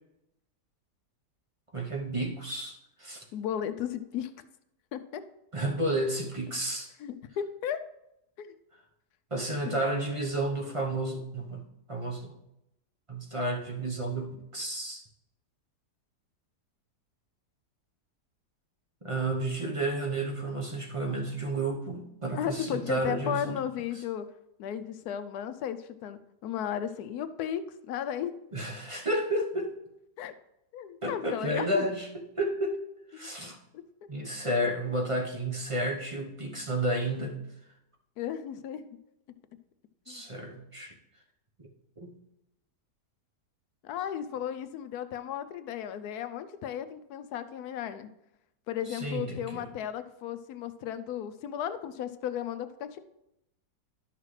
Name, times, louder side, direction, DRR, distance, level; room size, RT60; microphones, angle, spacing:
voice 1, 1.7-3.2 5.5-6.9 9.3-11.6 11.9-12.4 13.1-15.0 19.0-23.7 28.5-29.7 31.0-32.8 33.1-33.6 34.1-37.4 40.1-40.9 42.0-42.1 48.9-49.7, right 1 dB, 25° right, 1 dB, 0.7 m, -31 dB
voice 2, 3.3-4.4 4.9-5.2 7.0-7.9 8.4-8.5 9.7-9.8 22.3-24.3 24.6-28.3 30.2-30.3 30.7-31.8 33.2-33.3 33.7-33.8 38.2-38.9 40.1-40.2 43.8-48.1 48.7-53.0, left 9 dB, 75° left, 11 dB, 1.1 m, -35 dB
12.0 x 5.9 x 3.2 m, 0.85 s
omnidirectional pair, 1.8 m